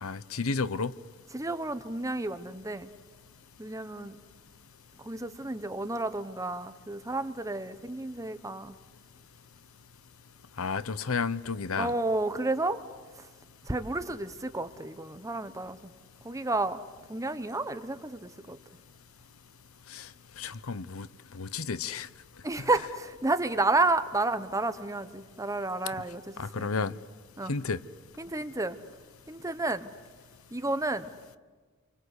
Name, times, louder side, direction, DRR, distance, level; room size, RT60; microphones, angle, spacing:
voice 1, 0.0-0.9 10.6-11.9 19.9-20.1 20.4-21.1 21.3-22.1 22.6-22.7 26.4-26.9 27.5-27.8, left 4 dB, 85° left, 0.8 m, -32 dB
voice 2, 1.3-2.9 3.6-4.2 5.0-8.7 11.8-12.8 13.2-13.3 13.6-15.9 16.2-16.8 17.1-18.6 22.4-26.7 27.4-27.5 28.2-28.8 29.3-29.9 30.5-31.1, right 2 dB, 15° right, 1.0 m, -31 dB
29.0 x 24.5 x 8.3 m
head